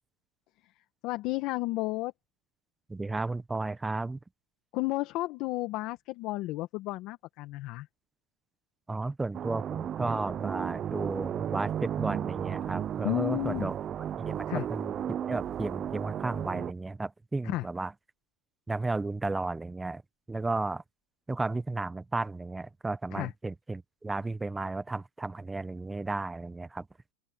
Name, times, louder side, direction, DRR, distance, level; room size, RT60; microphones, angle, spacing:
voice 1, 1.0-2.1 4.7-7.9 13.0-13.7 14.5-14.7 17.4-17.7 23.1-23.3, left 20 dB, 45° left, 1.4 m, -32 dB
voice 2, 2.9-4.2 8.9-13.8 14.2-14.9 15.2-17.9 18.7-20.0 20.3-20.8 21.3-26.9, right 3 dB, 10° right, 0.8 m, -33 dB
sound 1, 9.3-16.7, right 9 dB, 25° right, 0.3 m, -34 dB
open air
supercardioid pair, 140°, 0 cm